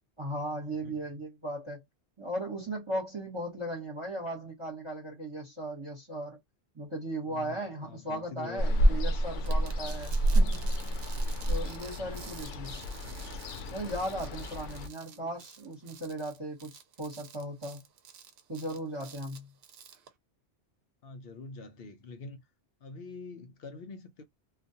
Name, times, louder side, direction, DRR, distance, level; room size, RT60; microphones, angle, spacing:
voice 1, 0.2-1.8 2.2-6.4 6.7-10.8 11.5-12.7 13.7-17.8 18.5-19.5, right 1 dB, 25° right, 1.0 m, -37 dB
voice 2, 7.2-9.0 10.2-10.8 12.0-12.2 15.0-15.4 21.0-22.4 22.8-24.2, left 3 dB, 65° left, 0.7 m, -46 dB
Ocean, 8.6-14.9, right 1 dB, 90° left, 0.9 m, -29 dB
sound 1, 9.4-20.1, right 8 dB, 65° right, 0.7 m, -51 dB
2.4 x 2.3 x 2.7 m
omnidirectional pair, 1.2 m